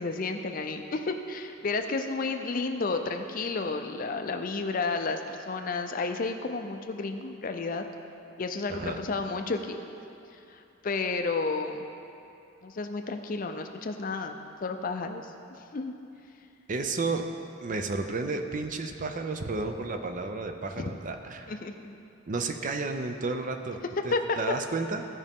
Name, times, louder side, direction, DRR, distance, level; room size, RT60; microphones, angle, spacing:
voice 1, 0.0-7.8 8.4-9.8 10.5-11.9 12.6-15.3 15.7-15.9 20.8-20.9 21.5-22.0 24.1-24.2, left 3 dB, 40° left, 6 dB, 0.5 m, -32 dB
voice 2, 16.7-17.3 17.6-21.5 22.3-25.1, right 3 dB, 40° right, 6 dB, 0.5 m, -32 dB
15.5 x 5.3 x 3.6 m, 2.7 s
head